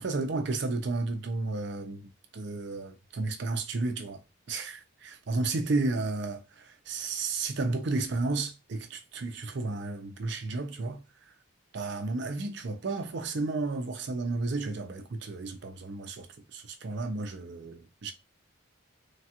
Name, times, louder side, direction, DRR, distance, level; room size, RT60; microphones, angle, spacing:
voice 1, 0.0-2.1 2.3-4.2 4.5-11.0 11.7-16.3 16.5-18.1, right 3 dB, 55° right, 0.5 m, -32 dB
3.2 x 2.3 x 2.8 m
head